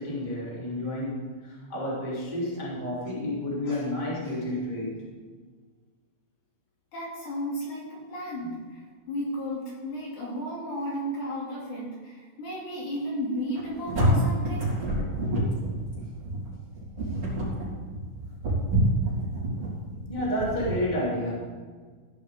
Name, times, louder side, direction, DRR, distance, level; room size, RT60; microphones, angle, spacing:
voice 1, 0.0-5.0 8.4-8.5 20.1-21.3, left 1 dB, 15° left, -6 dB, 2.8 m, -30 dB
voice 2, 6.9-14.8, equal, 55° left, -5 dB, 3.9 m, -34 dB
sound 1, 13.5-20.7, right 1 dB, 40° right, 4.9 m, -27 dB
15.5 x 11.0 x 3.6 m, 1.5 s
omnidirectional pair, 4.2 m